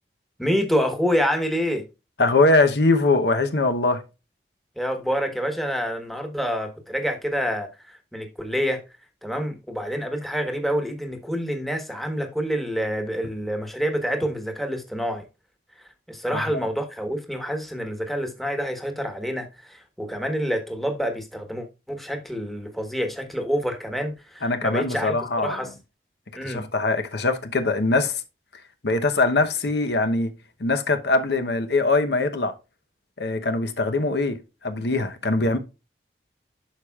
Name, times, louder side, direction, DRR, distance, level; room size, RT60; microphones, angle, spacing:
voice 1, 0.4-1.8 4.8-8.8 9.2-15.3 16.1-25.7 26.3-26.6, equal, ahead, 1.2 m, -27 dB
voice 2, 2.2-4.0 16.3-16.4 24.4-25.6 26.4-28.2 28.8-30.3 30.6-32.5 33.2-35.6, left 3 dB, 75° left, 0.9 m, -22 dB
11.5 x 4.9 x 2.4 m
head